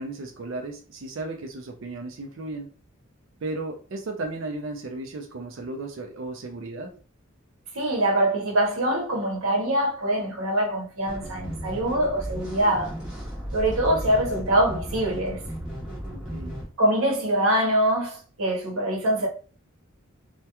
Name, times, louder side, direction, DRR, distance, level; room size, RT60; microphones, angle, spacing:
voice 1, 0.0-2.7 3.4-6.9 16.1-16.6, right 2 dB, 65° right, 0.5 m, -35 dB
voice 2, 7.7-13.0 13.5-15.4 16.8-19.3, right 1 dB, 85° right, 0.9 m, -24 dB
sound 1, 11.0-16.7, equal, 5° right, 0.9 m, -35 dB
2.8 x 2.2 x 2.2 m
head